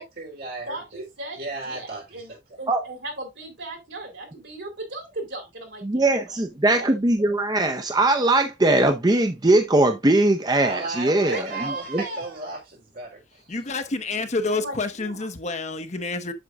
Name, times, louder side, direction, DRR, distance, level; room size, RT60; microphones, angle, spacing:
voice 1, 0.0-1.0 1.4-2.4 10.6-13.5, right 2 dB, 55° right, 3.8 m, -35 dB
voice 2, 0.7-6.9 11.1-12.6 14.5-15.2, right 2 dB, 75° right, 3.5 m, -37 dB
voice 3, 5.8-11.4 11.9-12.0, right 2 dB, 20° right, 0.6 m, -20 dB
voice 4, 13.5-16.3, left 3 dB, 40° left, 0.9 m, -28 dB
7.9 x 7.5 x 2.5 m
head